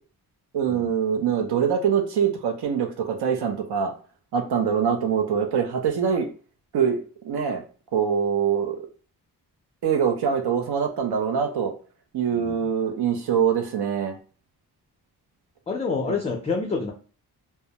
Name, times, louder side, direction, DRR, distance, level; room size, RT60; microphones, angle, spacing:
voice 1, 0.5-3.9 4.3-6.3 6.7-7.0 7.2-7.6 7.9-8.8 9.8-11.7 12.1-14.2, right 7 dB, 75° right, 5 dB, 0.6 m, -24 dB
voice 2, 12.3-12.7 15.7-16.9, left 4 dB, 20° left, 1 dB, 0.3 m, -28 dB
2.3 x 2.0 x 2.7 m, 0.39 s
wide cardioid pair, 135°, 39 cm